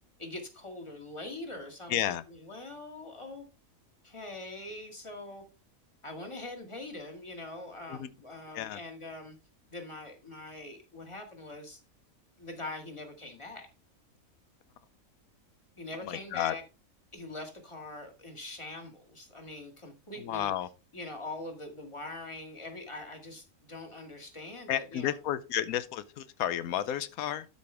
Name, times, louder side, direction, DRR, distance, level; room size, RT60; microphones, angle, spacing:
voice 1, 0.2-3.5 4.0-5.4 6.0-9.4 9.7-11.8 12.4-13.7 15.8-16.6 17.1-20.5 20.9-25.2, left 2 dB, 20° left, 2.0 m, -43 dB
voice 2, 1.9-2.2 7.9-8.1 8.5-8.8 16.0-16.5 20.2-20.7 24.7-27.5, left 11 dB, 90° left, 1.1 m, -32 dB
12.5 x 5.3 x 3.4 m
omnidirectional pair, 1.5 m